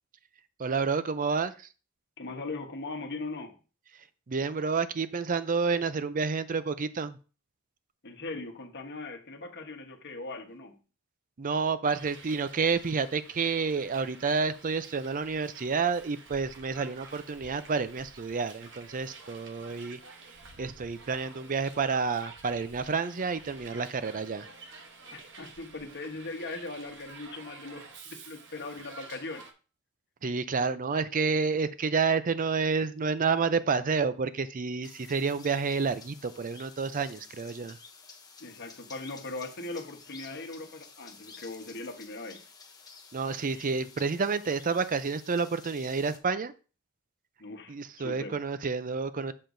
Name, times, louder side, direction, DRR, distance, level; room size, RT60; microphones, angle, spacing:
voice 1, 0.6-1.7 4.3-7.2 11.4-20.0 20.6-24.5 30.2-37.8 43.1-46.5 47.7-49.3, right 5 dB, 40° right, 13 dB, 0.5 m, -29 dB
voice 2, 2.2-3.6 8.0-10.8 25.1-29.5 38.4-42.4 47.4-48.4, left 2 dB, 50° left, 4 dB, 1.2 m, -40 dB
Hiss, 11.9-29.5, right 4 dB, 55° right, 1.0 m, -50 dB
sound 1, 34.8-46.2, left 5 dB, 15° left, 0.7 m, -52 dB
7.6 x 6.6 x 2.6 m, 0.35 s
head